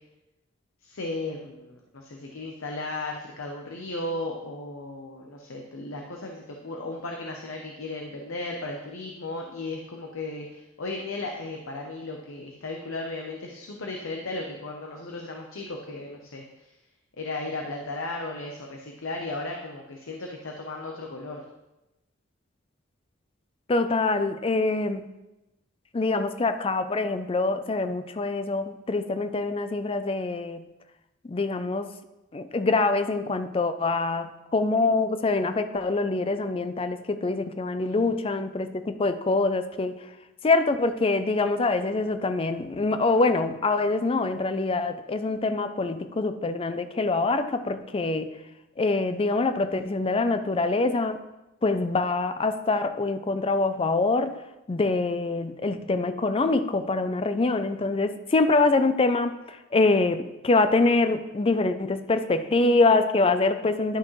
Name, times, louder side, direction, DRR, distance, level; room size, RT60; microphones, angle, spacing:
voice 1, 0.8-16.7 17.2-21.4 37.8-38.2, left 2 dB, 80° left, 1 dB, 0.8 m, -35 dB
voice 2, 23.7-25.0 25.9-30.6 31.3-31.9 32.3-40.0 40.4-48.3 48.8-51.2 51.6-54.4 54.7-64.0, left 3 dB, 30° left, 10 dB, 0.5 m, -25 dB
11.0 x 6.1 x 3.2 m, 0.96 s
head